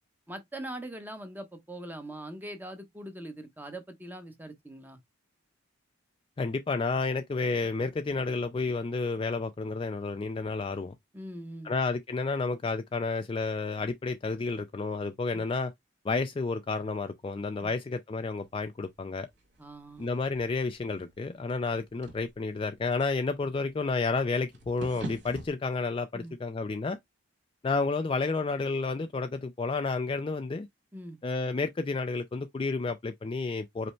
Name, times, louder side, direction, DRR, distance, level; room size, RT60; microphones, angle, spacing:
voice 1, 0.3-5.0 11.1-11.7 19.6-20.1 26.1-26.4 30.9-31.2, right 1 dB, 10° right, 0.9 m, -42 dB
voice 2, 6.4-10.9 11.6-15.7 16.0-19.3 20.0-27.0 27.6-30.7 31.2-33.9, left 3 dB, 25° left, 0.3 m, -31 dB
sound 1, 18.4-25.5, right 1 dB, 55° right, 1.8 m, -47 dB
5.2 x 2.0 x 4.4 m
head